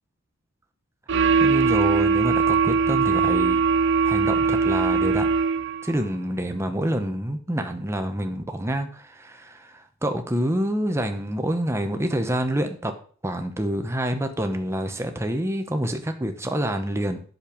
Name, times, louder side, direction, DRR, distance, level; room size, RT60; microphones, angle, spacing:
sound 1, 1.1-5.9, right 5 dB, 55° right, 0.5 m, -21 dB
voice 1, 1.4-3.6 4.0-5.3 5.8-12.9 13.2-17.2, right 1 dB, 10° right, 6 dB, 1.0 m, -27 dB
8.6 x 6.8 x 5.1 m, 0.44 s
head